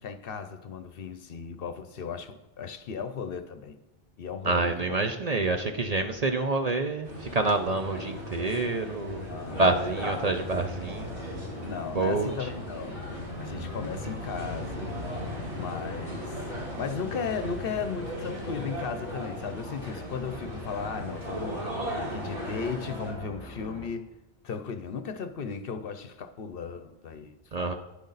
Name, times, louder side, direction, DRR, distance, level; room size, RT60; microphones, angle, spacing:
voice 1, 0.0-3.8 4.2-5.0 9.2-9.6 10.0-10.3 11.6-13.0 13.4-15.0 15.5-16.4 16.8-21.6 21.9-24.1 24.4-27.7, left 6 dB, 60° left, 10 dB, 0.8 m, -36 dB
voice 2, 4.4-11.1 11.9-12.5 27.5-27.7, right 2 dB, 45° right, 6 dB, 0.6 m, -27 dB
sound 1, 7.0-23.1, equal, 75° right, 4.3 m, -37 dB
sound 2, 9.4-23.9, left 1 dB, 5° left, 1.6 m, -45 dB
10.5 x 10.0 x 4.0 m, 1.0 s
omnidirectional pair, 1.1 m